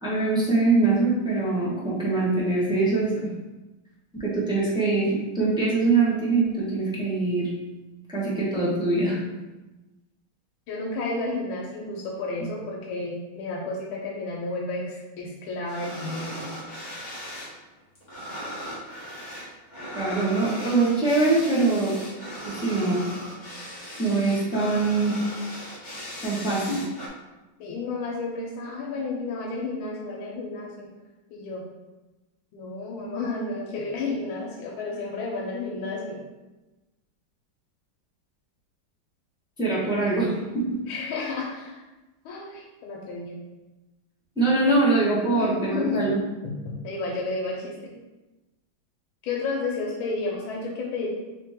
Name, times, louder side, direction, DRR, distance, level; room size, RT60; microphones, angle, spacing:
voice 1, 0.0-3.3 4.2-7.5 8.1-9.2 19.9-22.0 22.4-23.0 24.0-25.2 26.2-26.8 39.6-40.6 44.4-46.2, right 3 dB, 5° right, -8 dB, 0.5 m, -23 dB
voice 2, 10.7-16.4 27.6-30.9 31.3-31.6 32.5-36.2 40.9-41.8 42.2-43.4 45.3-46.0 46.4-47.9 49.2-51.1, left 3 dB, 90° left, -3 dB, 1.5 m, -31 dB
sound 1, 15.7-17.5 17.8-27.1, equal, 30° left, 1.0 m, -38 dB
3.8 x 3.1 x 3.5 m, 1.1 s
omnidirectional pair, 2.2 m